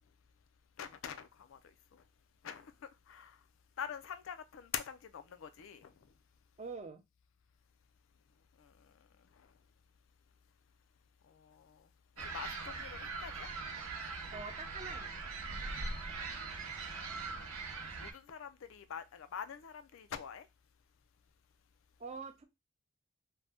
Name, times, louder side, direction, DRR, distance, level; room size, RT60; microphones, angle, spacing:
voice 1, 0.8-1.6 2.4-2.7 3.1-3.3 3.8-5.9 12.2-13.5 18.0-20.4, left 8 dB, 70° left, 0.4 m, -44 dB
voice 2, 6.6-7.0 14.3-15.1 22.0-22.4, right 4 dB, 30° right, 0.4 m, -44 dB
sound 1, 12.2-18.1, right 4 dB, 90° right, 0.7 m, -41 dB
2.6 x 2.1 x 3.3 m
head